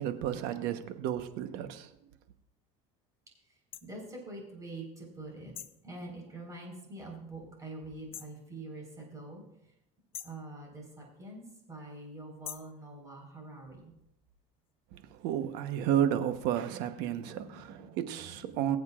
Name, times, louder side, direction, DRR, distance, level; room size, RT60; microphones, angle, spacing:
voice 1, 0.0-1.9 14.9-18.8, right 10 dB, 65° right, 1.1 m, -32 dB
Metal Grate Floor Hit Pickaxe Hammer Thingy Hard Great Hall, 3.7-3.9 5.5-5.8 8.1-8.4 10.1-10.4 12.4-12.8, left 10 dB, 35° left, 0.6 m, -44 dB
voice 2, 3.8-9.5 10.2-13.9 17.3-18.5, right 2 dB, 20° right, 4.5 m, -45 dB
23.0 x 8.0 x 2.5 m
cardioid pair, 140°, 18 cm